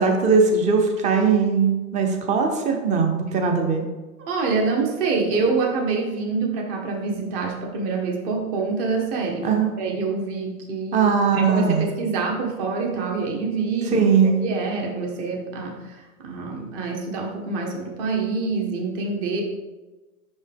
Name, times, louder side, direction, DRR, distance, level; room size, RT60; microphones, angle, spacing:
voice 1, 0.0-3.9 9.4-9.7 10.9-11.9 13.9-14.4, right 5 dB, 15° right, 4 dB, 0.7 m, -20 dB
voice 2, 4.3-11.1 11.4-14.0 14.4-19.4, right 4 dB, 40° right, 1 dB, 1.5 m, -26 dB
5.7 x 5.3 x 3.5 m, 1.2 s
hypercardioid pair, 125°, 44 cm